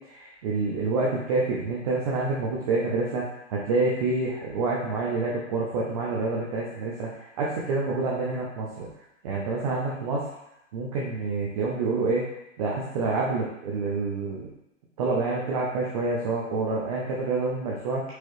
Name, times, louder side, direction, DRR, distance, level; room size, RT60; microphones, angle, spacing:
voice 1, 0.1-3.2 3.5-8.9 9.2-10.2 10.7-12.2 12.6-14.5 15.0-18.0, right 3 dB, 30° right, -4 dB, 0.6 m, -27 dB
4.6 x 2.9 x 3.1 m, 0.82 s
hypercardioid pair, 155°, 39 cm